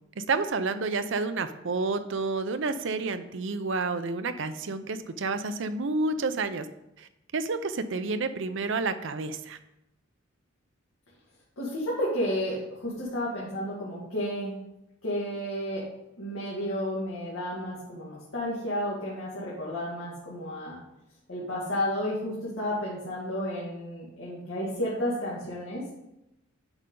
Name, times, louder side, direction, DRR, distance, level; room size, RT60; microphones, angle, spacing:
voice 1, 0.2-6.7 7.0-7.1 7.3-9.6, right 3 dB, 60° right, 10 dB, 0.6 m, -30 dB
voice 2, 11.6-14.5 15.0-15.9 16.2-20.8 21.3-26.0, equal, 75° left, -7 dB, 2.1 m, -32 dB
8.9 x 5.7 x 3.8 m, 0.88 s
head